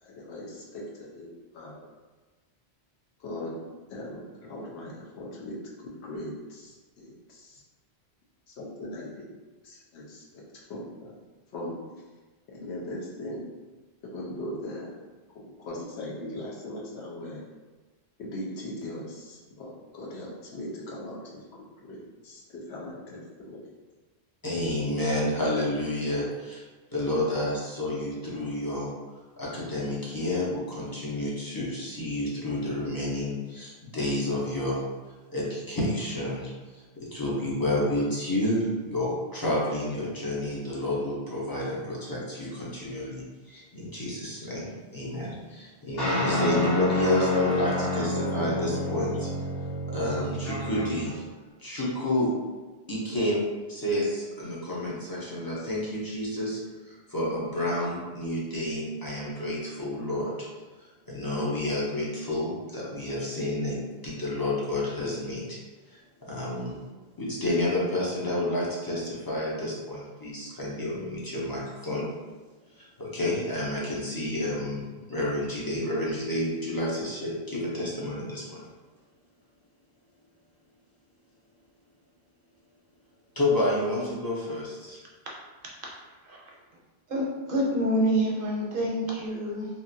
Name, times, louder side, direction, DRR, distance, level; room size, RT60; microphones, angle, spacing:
voice 1, 0.0-1.3 1.5-1.8 3.2-3.5 3.9-5.6 5.8-7.6 8.5-9.4 9.6-11.1 11.5-11.8 12.5-13.4 14.1-14.9 15.3-17.4 18.2-22.0 22.2-22.4 22.7-23.6, left 1 dB, 80° left, -4 dB, 1.0 m, -39 dB
voice 2, 24.4-26.6 26.9-28.9 29.4-34.8 35.3-49.3 49.9-51.2 51.6-52.3 52.9-53.4 53.7-60.5 60.8-65.6 65.9-66.8 67.2-72.1 72.8-74.8 75.1-78.7 83.4-85.0, left 1 dB, 30° left, -6 dB, 0.5 m, -30 dB
sound 1, 46.0-51.1, left 1 dB, 60° left, 1.4 m, -29 dB
voice 3, 87.1-89.7, right 1 dB, 60° right, -3 dB, 0.7 m, -27 dB
2.8 x 2.5 x 2.6 m, 1.3 s
omnidirectional pair, 1.1 m